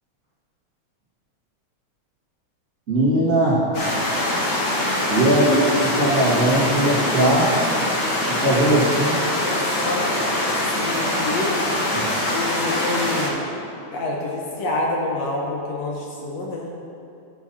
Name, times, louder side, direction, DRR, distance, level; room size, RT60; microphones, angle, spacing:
voice 1, 2.9-3.6 5.1-7.5 8.3-9.1 11.9-12.1, right 1 dB, 30° right, -10 dB, 1.8 m, -19 dB
sound 1, 3.7-13.3, left 1 dB, 50° left, 2.0 m, -23 dB
voice 2, 8.6-8.9 9.4-11.5 12.3-13.5 13.9-16.7, left 2 dB, 70° left, -2 dB, 2.0 m, -28 dB
11.0 x 9.0 x 2.8 m, 2.7 s
omnidirectional pair, 3.3 m